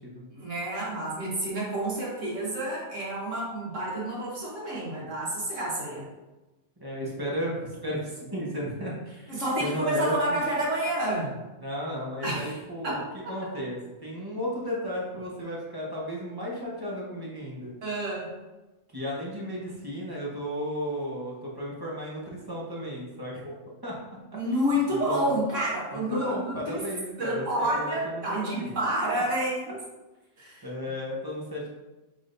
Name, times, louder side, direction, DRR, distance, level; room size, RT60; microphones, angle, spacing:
voice 1, 0.3-6.1 9.3-11.4 12.2-12.6 12.8-13.3 17.8-18.3 24.3-26.8 27.2-29.8 30.4-30.6, right 1 dB, 60° right, -5 dB, 1.7 m, -29 dB
voice 2, 6.8-10.4 11.6-13.0 13.3-17.7 18.9-23.6 23.8-24.2 24.9-25.3 25.9-28.8 29.1-29.2 30.6-31.7, equal, 20° right, -5 dB, 0.9 m, -34 dB
6.1 x 3.4 x 2.6 m, 1.1 s
omnidirectional pair, 1.5 m